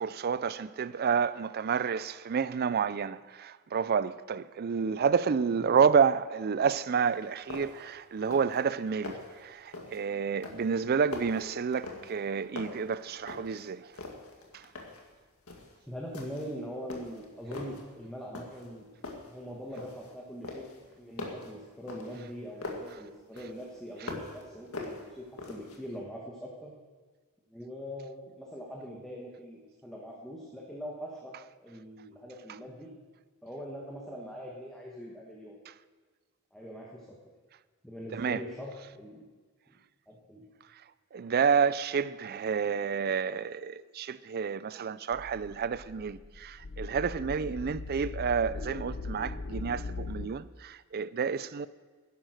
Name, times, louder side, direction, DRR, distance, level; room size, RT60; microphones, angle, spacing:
voice 1, 0.0-13.9 14.5-14.7 38.1-38.4 41.1-51.7, right 6 dB, 45° right, 0.4 m, -29 dB
sound 1, 7.0-7.1 7.5-7.9 8.2-8.6 8.9-9.4 9.7-10.1 10.4-12.3 12.6-13.6 13.9-15.1 15.5-15.7 16.1-16.6 16.9-17.8 18.3-18.7 19.0-20.1 20.4-22.9 23.4-24.4 24.7-25.8, left 3 dB, 85° left, 2.0 m, -42 dB
voice 2, 15.8-18.9 19.2-20.7 21.0-26.7 27.5-31.4 31.6-32.9 33.4-35.6 36.5-37.1 37.8-39.2 39.7-39.8 40.1-40.5, equal, ahead, 1.5 m, -42 dB
sound 2, 45.1-50.3, left 3 dB, 55° left, 0.6 m, -40 dB
11.5 x 10.5 x 6.4 m
head